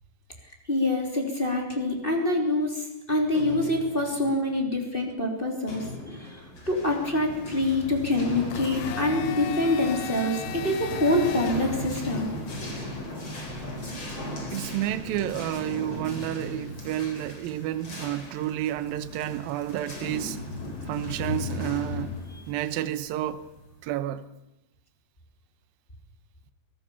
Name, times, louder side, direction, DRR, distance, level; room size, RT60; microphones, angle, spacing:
voice 1, 0.7-12.3, left 1 dB, 15° left, 3.0 m, -26 dB
sound 1, 2.2-2.3 3.3-4.6 5.7-7.0 7.3-7.4 8.6-9.8 10.1-11.0 12.5-17.4 17.7-17.8 18.2-18.3 18.7-19.2, left 2 dB, 65° left, 8.2 m, -44 dB
sound 2, 6.4-23.8, left 1 dB, 30° left, 4.3 m, -36 dB
Domestic sounds home sounds, 8.5-12.5, left 12 dB, 90° left, 3.3 m, -38 dB
voice 2, 14.5-20.4 20.8-22.2 22.5-23.5 23.8-24.2, right 12 dB, 75° right, 2.3 m, -30 dB
23.5 x 18.0 x 7.1 m
omnidirectional pair, 5.2 m